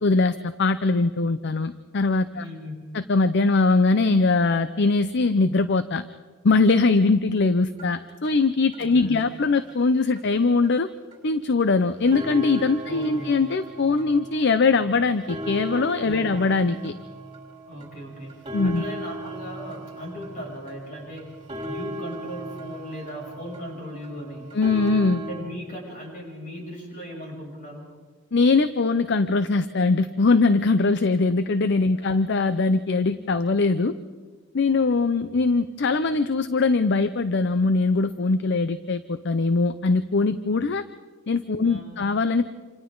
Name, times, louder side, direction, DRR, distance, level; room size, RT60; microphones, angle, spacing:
voice 1, 0.0-2.4 2.9-6.0 6.4-10.9 11.2-16.9 18.5-18.8 24.5-25.2 28.3-33.9 34.5-40.8 41.3-42.5, left 3 dB, 55° left, 12 dB, 0.6 m, -21 dB
voice 2, 2.3-2.9 8.8-9.2 12.8-13.3 16.1-16.5 17.7-21.4 21.6-24.6 25.2-27.9 31.9-32.2 41.6-42.0, equal, 40° left, -1 dB, 6.9 m, -38 dB
sound 1, 7.8-7.9 8.2-8.3 8.7-8.9 9.2-9.3 9.7-9.8 10.2-10.3 10.6-10.7 11.1-11.2 11.6-11.7 12.0-25.4, right 1 dB, 25° right, 3.8 m, -37 dB
27.5 x 27.0 x 3.9 m, 1.4 s
head